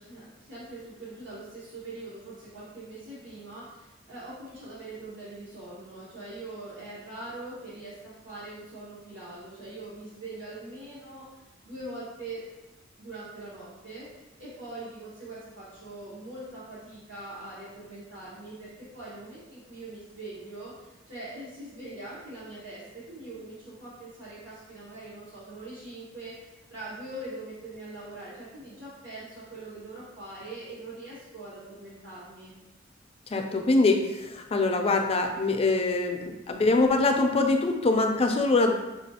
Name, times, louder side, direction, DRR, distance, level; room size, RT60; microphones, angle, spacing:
voice 1, 0.0-11.2 11.6-12.4 13.0-32.5, right 2 dB, 70° right, -10 dB, 1.2 m, -42 dB
voice 2, 33.3-36.2 36.5-38.7, left 3 dB, 30° left, 4 dB, 0.4 m, -23 dB
5.9 x 2.4 x 2.8 m, 1.0 s
head